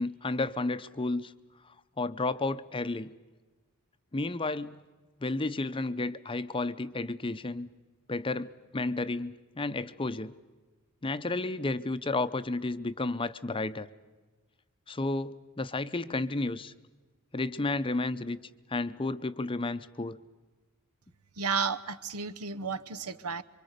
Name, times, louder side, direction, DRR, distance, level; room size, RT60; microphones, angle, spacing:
voice 1, 0.0-1.3 2.0-3.1 4.1-4.8 5.2-7.7 8.1-10.3 11.0-13.9 14.9-16.7 17.3-18.4 18.7-20.2, left 2 dB, 25° left, 12 dB, 0.6 m, -32 dB
voice 2, 21.4-23.4, right 5 dB, 85° right, 13 dB, 1.0 m, -32 dB
26.5 x 24.0 x 6.7 m, 1.3 s
head